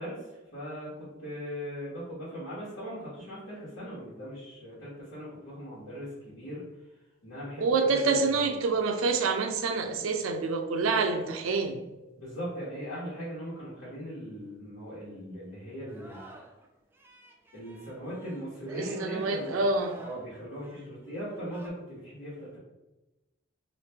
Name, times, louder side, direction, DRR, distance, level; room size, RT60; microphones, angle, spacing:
voice 1, 0.0-6.6 7.2-8.2 12.2-16.2 17.5-19.6 20.0-22.6, equal, 70° left, -11 dB, 1.3 m, -39 dB
voice 2, 7.6-11.8 18.7-20.0, right 4 dB, 85° right, 6 dB, 0.4 m, -27 dB
Singing, 15.9-16.7 16.9-21.7, right 2 dB, 10° right, 0.3 m, -51 dB
3.1 x 2.5 x 3.3 m, 1.0 s
head